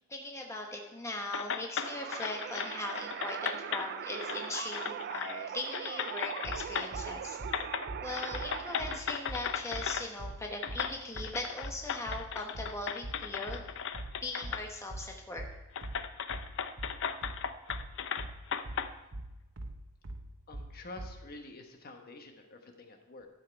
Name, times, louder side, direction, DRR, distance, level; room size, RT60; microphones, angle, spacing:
voice 1, 0.1-7.4 8.0-13.6 14.2-15.4, left 2 dB, 15° left, 1 dB, 1.0 m, -40 dB
sound 1, 1.3-3.9 4.2-5.4 5.7-7.1 7.5-7.9 8.1-10.1 10.6-14.6 15.0-15.1 15.7-18.9, left 7 dB, 65° left, 0.6 m, -37 dB
sound 2, 1.8-9.0, right 8 dB, 50° right, 0.3 m, -41 dB
sound 3, 6.4-21.2, right 1 dB, 70° right, 1.0 m, -42 dB
voice 2, 20.5-23.3, left 2 dB, 45° left, 4 dB, 1.2 m, -48 dB
12.0 x 7.6 x 4.5 m, 1.0 s
head